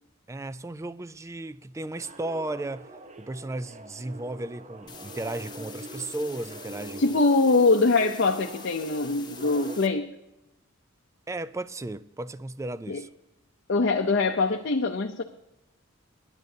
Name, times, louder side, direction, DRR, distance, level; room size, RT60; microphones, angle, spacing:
voice 1, 0.3-2.9 3.2-7.2 11.3-13.1, right 2 dB, 15° right, 0.3 m, -35 dB
sound 1, 2.0-9.9, right 2 dB, 35° right, 0.8 m, -43 dB
sound 2, 4.9-9.9, left 7 dB, 20° left, 0.9 m, -46 dB
voice 2, 7.0-10.1 12.9-13.0 13.7-15.2, left 3 dB, 55° left, 0.6 m, -23 dB
19.0 x 10.5 x 2.8 m
head